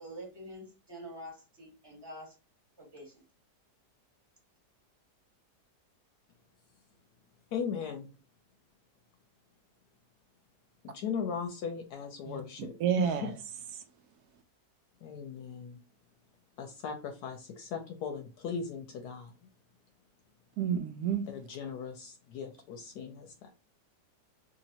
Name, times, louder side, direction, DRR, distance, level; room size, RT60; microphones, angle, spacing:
voice 1, 0.0-2.3 2.8-3.2, equal, 15° right, 1.2 m, -46 dB
voice 2, 7.5-8.1 10.8-13.3 15.0-15.8 16.6-19.3 21.3-23.5, left 6 dB, 70° left, 1.1 m, -38 dB
voice 3, 12.8-13.3 20.6-21.3, right 8 dB, 70° right, 1.1 m, -29 dB
3.1 x 2.8 x 2.8 m
omnidirectional pair, 1.9 m